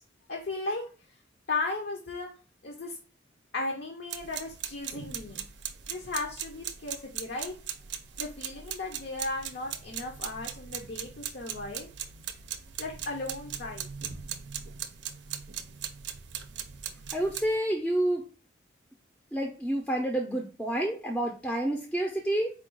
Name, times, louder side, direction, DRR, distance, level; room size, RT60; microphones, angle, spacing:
voice 1, 0.3-0.8 1.5-2.3 2.6-2.9 3.5-5.5 5.9-7.5 8.2-11.9 12.8-13.9, left 3 dB, 60° left, 1 dB, 0.7 m, -35 dB
sound 1, 4.1-17.6, right 9 dB, 70° right, 0.5 m, -39 dB
voice 2, 17.1-18.2 19.3-22.5, right 1 dB, 5° left, 1 dB, 0.5 m, -29 dB
4.3 x 2.3 x 4.5 m, 0.34 s
head